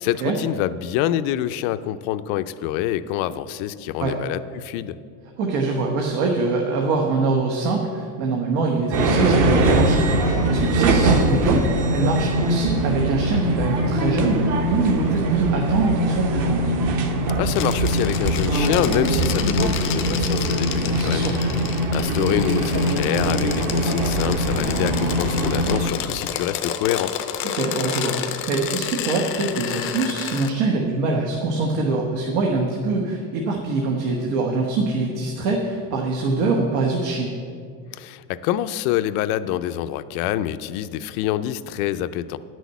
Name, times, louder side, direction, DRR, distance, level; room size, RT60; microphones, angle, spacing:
voice 1, 0.0-5.0 17.4-21.6 21.9-27.1 37.9-42.4, left 12 dB, 75° left, 13 dB, 0.6 m, -26 dB
voice 2, 5.4-16.6 20.9-21.4 27.5-37.3, right 3 dB, 80° right, 1 dB, 1.4 m, -24 dB
sound 1, 8.9-25.9, right 1 dB, 45° right, 1.1 m, -21 dB
sound 2, 17.5-30.5, left 9 dB, 30° left, 0.5 m, -31 dB
10.5 x 6.3 x 8.2 m, 2.2 s
cardioid pair, 175°, 42 cm